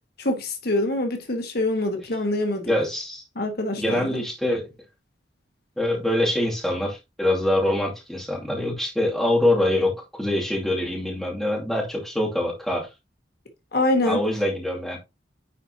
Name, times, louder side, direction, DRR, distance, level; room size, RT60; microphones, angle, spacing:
voice 1, 0.2-2.7 3.3-4.2 13.7-14.2, left 2 dB, 55° left, 1.3 m, -25 dB
voice 2, 2.6-3.2 3.8-4.7 5.8-12.9 14.1-15.0, left 1 dB, ahead, 2.4 m, -24 dB
10.0 x 4.4 x 2.8 m
head